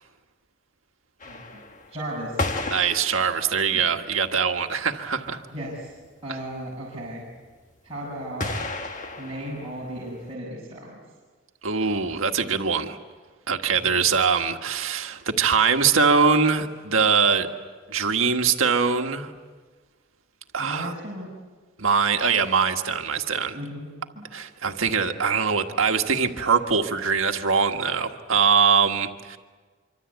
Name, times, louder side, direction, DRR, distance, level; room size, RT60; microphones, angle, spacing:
sound 1, 1.2-4.0 4.6-4.7 4.9-5.0 5.3-5.4 5.6-6.1 8.4-10.3, left 2 dB, 35° left, 1.5 m, -33 dB
voice 1, 1.9-2.5 3.7-3.9 5.5-5.9 6.2-7.2 7.8-8.5 9.2-10.9 13.7-14.0 20.6-21.3 23.5-23.9 24.1-24.2, right 1 dB, 30° right, -6 dB, 6.0 m, -35 dB
voice 2, 2.7-5.4 11.6-13.0 13.5-17.5 17.9-19.3 20.5-20.9 21.8-23.6 24.3-29.4, right 5 dB, 80° right, 5 dB, 1.6 m, -22 dB
26.0 x 25.0 x 8.2 m, 1.4 s
head